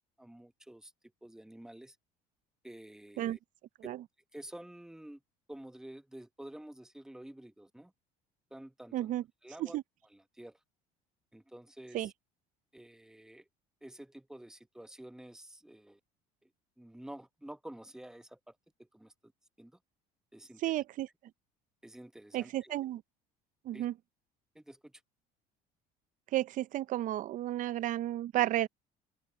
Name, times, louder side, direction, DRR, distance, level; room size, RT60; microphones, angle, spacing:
voice 1, 0.2-0.9 1.2-2.0 2.6-3.4 3.8-3.9 4.3-5.2 5.5-7.9 8.5-9.1 9.4-9.8 10.1-10.6 11.3-12.1 12.7-13.5 13.8-16.0 16.4-16.5 16.8-19.3 19.6-19.8 20.3-20.7 21.8-22.7 23.7-23.9 24.5-25.0, right 1 dB, 5° right, 1.2 m, -50 dB
voice 2, 8.9-9.2 9.6-9.8 11.9-12.1 20.6-21.1 22.3-23.0 23.6-23.9 26.3-28.7, right 14 dB, 50° right, 0.6 m, -32 dB
open air
cardioid pair, 110°, 17 cm